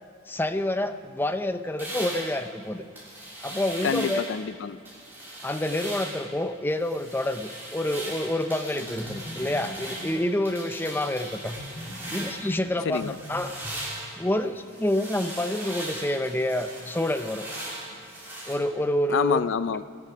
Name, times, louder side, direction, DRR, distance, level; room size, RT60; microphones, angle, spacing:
voice 1, 0.3-2.8 3.4-4.2 5.4-11.5 12.1-13.5 14.2-17.5 18.5-19.5, left 1 dB, 10° left, 9 dB, 0.4 m, -28 dB
sound 1, 1.8-4.5 4.9-6.3 6.7-12.6 12.9-18.5, right 1 dB, 10° right, 3.1 m, -39 dB
voice 2, 3.8-4.8 12.9-13.2 19.1-19.8, left 6 dB, 70° left, 15 dB, 0.4 m, -27 dB
sound 2, 8.7-10.2 11.4-13.7, equal, 40° left, 3.1 m, -40 dB
19.5 x 7.2 x 5.8 m, 2.3 s
head